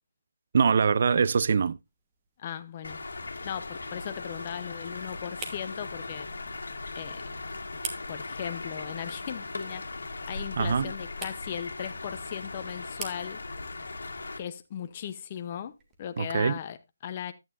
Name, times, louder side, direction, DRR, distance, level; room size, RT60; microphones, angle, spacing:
voice 1, 0.5-1.8 10.6-10.9 16.2-16.6, right 6 dB, 50° right, 0.4 m, -23 dB
sound 1, 1.8-16.6, right 4 dB, 15° right, 1.1 m, -48 dB
voice 2, 2.4-3.0 3.4-6.3 6.9-7.2 8.1-9.8 10.3-13.4 14.4-15.7 16.0-17.3, left 9 dB, 30° left, 0.7 m, -37 dB
sound 2, 2.8-14.4, left 3 dB, 85° left, 1.6 m, -38 dB
11.0 x 9.0 x 2.5 m
hypercardioid pair, 170°, 0 cm